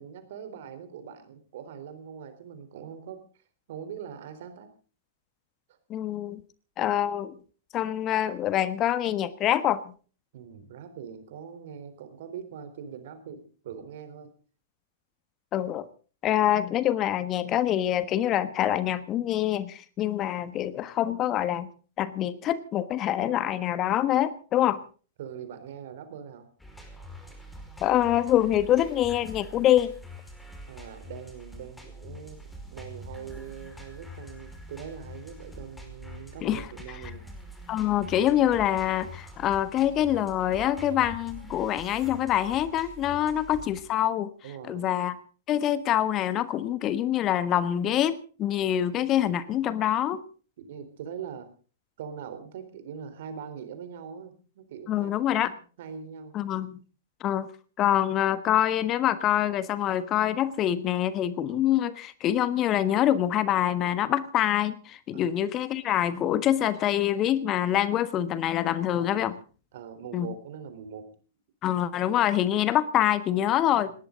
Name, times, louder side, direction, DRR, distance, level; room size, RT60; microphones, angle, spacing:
voice 1, 0.0-3.2 3.7-4.7 10.3-14.3 24.7-24.8 25.2-26.5 30.7-37.3 43.1-43.2 44.4-44.9 48.7-48.8 50.6-51.5 52.0-56.4 61.5-61.6 65.1-65.4 68.9-69.2 69.7-71.1, right 7 dB, 55° right, 10 dB, 3.9 m, -42 dB
voice 2, 5.9-6.4 6.8-7.3 7.7-9.9 15.5-15.9 16.2-21.7 22.0-24.8 27.8-29.9 36.4-36.6 37.7-44.3 44.7-45.2 45.5-50.2 54.9-55.5 56.3-56.8 57.2-57.5 57.8-69.4 70.1-70.3 71.6-73.9, left 11 dB, 30° left, 14 dB, 1.3 m, -25 dB
sound 1, 26.6-43.8, equal, 5° left, 5.1 m, -45 dB
20.0 x 18.5 x 3.9 m, 0.39 s
figure-of-eight pair, 105°, 0 cm